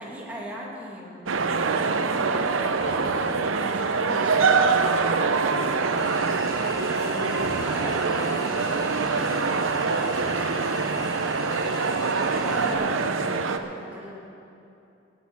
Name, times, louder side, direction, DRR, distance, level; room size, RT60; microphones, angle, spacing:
voice 1, 0.0-1.7 2.0-6.5 7.0-11.4 11.8-14.2, equal, 10° right, -4 dB, 2.3 m, -40 dB
sound 1, 1.3-13.6, right 4 dB, 80° right, 0.7 m, -24 dB
sound 2, 6.0-12.7, left 1 dB, 20° left, 1.3 m, -40 dB
18.5 x 8.4 x 6.0 m, 2.8 s
head